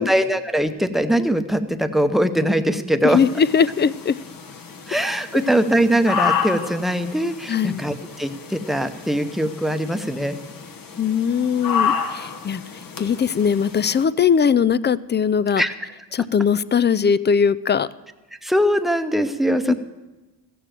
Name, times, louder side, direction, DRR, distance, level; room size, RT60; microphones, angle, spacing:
voice 1, 0.0-3.2 4.9-10.4 15.6-15.7 18.4-19.7, equal, ahead, 7 dB, 0.9 m, -21 dB
voice 2, 3.0-4.2 7.5-7.8 11.0-12.6 13.0-15.6 16.1-17.9 19.7-19.8, left 7 dB, 30° left, 18 dB, 0.4 m, -20 dB
sound 1, 3.1-14.0, left 6 dB, 60° left, 1.4 m, -30 dB
14.5 x 7.0 x 7.5 m, 1.1 s
cardioid pair, 65°, 39 cm